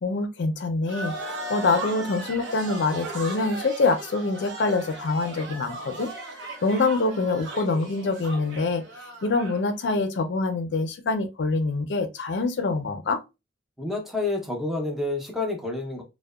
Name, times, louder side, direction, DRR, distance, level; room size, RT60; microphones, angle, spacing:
voice 1, 0.0-6.1 6.6-13.2, left 3 dB, 65° left, 0.5 m, -25 dB
sound 1, 0.9-9.6, right 2 dB, 85° right, 0.7 m, -37 dB
voice 2, 13.8-16.0, left 2 dB, ahead, 0.5 m, -29 dB
2.7 x 2.1 x 2.2 m
head